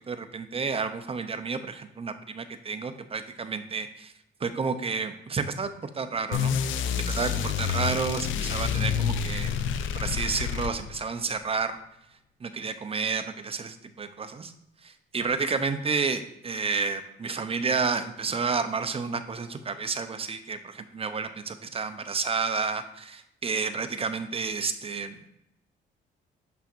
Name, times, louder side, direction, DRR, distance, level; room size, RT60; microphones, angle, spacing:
voice 1, 0.1-4.1 4.4-6.6 7.0-9.5 9.9-11.8 12.4-14.5 14.8-25.2, right 5 dB, 30° right, 9 dB, 0.6 m, -30 dB
sound 1, 6.3-11.1, left 7 dB, 80° left, 0.5 m, -28 dB
7.1 x 5.6 x 2.5 m, 0.80 s
cardioid pair, 90°, 20 cm